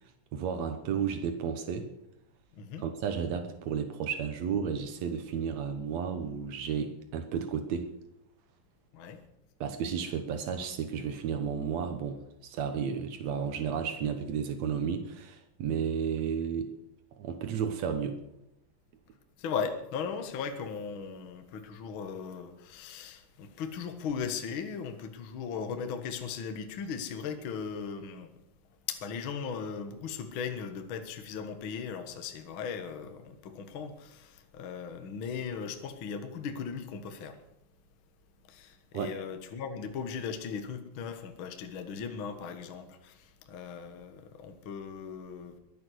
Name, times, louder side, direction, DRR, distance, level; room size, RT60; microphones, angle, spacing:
voice 1, 0.3-1.9 2.8-7.9 9.6-16.7 17.2-18.2 38.9-39.1, right 7 dB, 80° right, 8 dB, 1.5 m, -32 dB
voice 2, 2.5-2.8 8.9-9.2 19.4-28.3 28.9-37.4 38.5-45.6, left 6 dB, 85° left, 7 dB, 1.1 m, -38 dB
22.0 x 8.5 x 6.4 m, 0.85 s
omnidirectional pair, 4.6 m